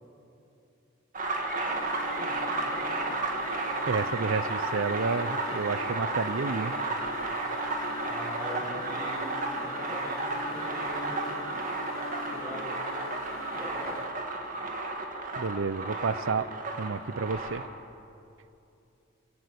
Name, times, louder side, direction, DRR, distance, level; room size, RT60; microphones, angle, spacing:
sound 1, 1.1-17.7, right 2 dB, 40° right, 2.0 m, -33 dB
sound 2, 1.7-14.3, left 3 dB, 70° left, 1.1 m, -42 dB
voice 1, 2.1-2.8 3.1-3.3 8.0-11.4 12.3-12.7 13.6-14.0, equal, 15° right, -4 dB, 7.4 m, -42 dB
voice 2, 3.8-6.7 15.4-16.5 16.8-17.6, right 4 dB, 70° right, 15 dB, 0.6 m, -30 dB
26.5 x 17.0 x 8.4 m, 2.8 s
head